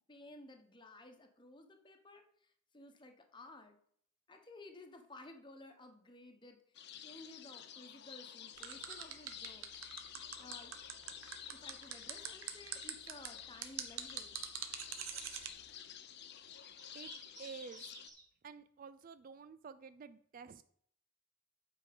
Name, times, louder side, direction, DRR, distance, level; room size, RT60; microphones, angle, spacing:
voice 1, 0.1-3.8 4.3-6.6 7.0-9.7 10.4-10.7 11.5-14.5, left 2 dB, 20° left, 5 dB, 1.1 m, -55 dB
sound 1, 6.7-18.1, left 9 dB, 50° left, 0.6 m, -51 dB
sound 2, 8.6-15.5, right 9 dB, 70° right, 1.1 m, -43 dB
sound 3, 12.0-18.2, right 2 dB, 20° right, 1.5 m, -58 dB
voice 2, 17.4-17.9 18.4-20.6, right 5 dB, 40° right, 13 dB, 0.3 m, -50 dB
9.0 x 4.9 x 5.1 m, 0.63 s
head